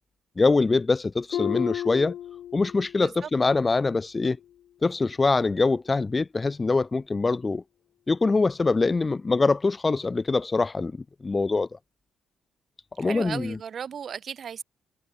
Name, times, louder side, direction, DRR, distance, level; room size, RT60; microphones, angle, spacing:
voice 1, 0.4-2.1 2.5-4.4 4.8-7.6 8.1-11.0 11.2-11.8 13.0-13.6, left 3 dB, 25° left, 0.5 m, -24 dB
Harp, 1.3-3.1 3.4-3.8 4.4-4.5, left 11 dB, 70° left, 0.8 m, -33 dB
voice 2, 13.0-14.6, right 7 dB, 55° right, 1.9 m, -36 dB
cardioid pair, 90°, 0 cm